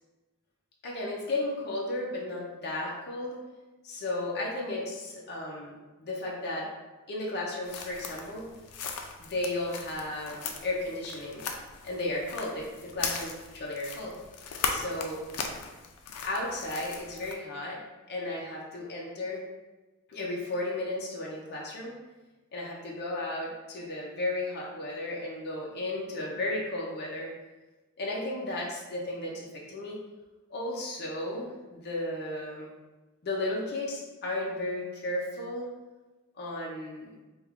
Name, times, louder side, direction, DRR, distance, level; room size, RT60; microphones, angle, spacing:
voice 1, 0.8-3.4 3.8-6.7 7.1-8.5 9.2-11.4 11.8-12.7 13.0-14.2 14.7-15.2 16.2-17.8 18.1-19.4 20.1-21.9 22.5-27.3 28.0-30.0 30.5-32.7 33.2-35.7 36.4-37.1, left 2 dB, 50° left, -3 dB, 0.6 m, -34 dB
sound 1, 7.6-17.3, left 5 dB, 90° left, 0.4 m, -38 dB
3.2 x 2.3 x 3.5 m, 1.2 s
head